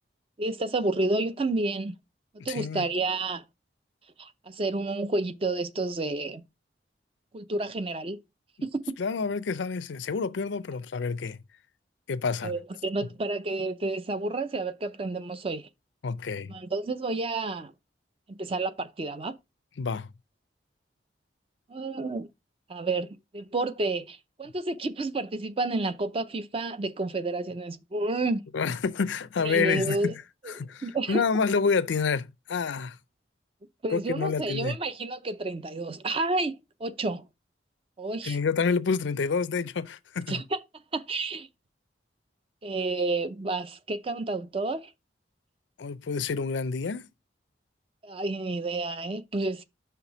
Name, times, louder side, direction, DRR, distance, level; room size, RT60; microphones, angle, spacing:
voice 1, 0.4-1.9 2.4-3.4 4.2-6.4 7.3-8.2 8.6-8.8 12.4-15.7 16.5-17.7 18.3-19.3 21.7-22.3 22.7-28.4 29.4-30.1 30.4-30.5 30.8-31.2 33.8-36.5 36.8-37.3 38.0-38.4 40.3-40.6 40.9-41.5 42.6-44.8 48.0-49.6, right 2 dB, 30° right, 0.5 m, -30 dB
voice 2, 2.4-2.9 9.0-11.4 12.1-12.5 16.0-16.5 19.8-20.1 28.5-30.0 30.5-33.0 33.9-34.8 38.2-40.4 45.8-47.1, left 5 dB, 90° left, 0.5 m, -28 dB
5.8 x 3.4 x 5.9 m
head